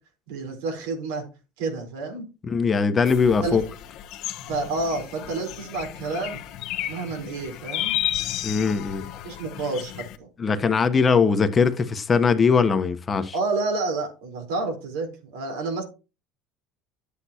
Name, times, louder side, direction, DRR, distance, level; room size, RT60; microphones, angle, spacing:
voice 1, 0.3-1.2 1.6-2.3 3.4-3.6 4.5-6.4 6.8-8.0 9.2-10.3 13.3-15.8, right 3 dB, 90° right, 4.2 m, -29 dB
voice 2, 2.5-3.6 8.4-9.0 10.4-13.3, left 5 dB, 25° left, 1.1 m, -21 dB
sound 1, 3.1-10.2, left 12 dB, 60° left, 1.0 m, -33 dB
10.5 x 8.3 x 2.9 m
supercardioid pair, 110°, 0 cm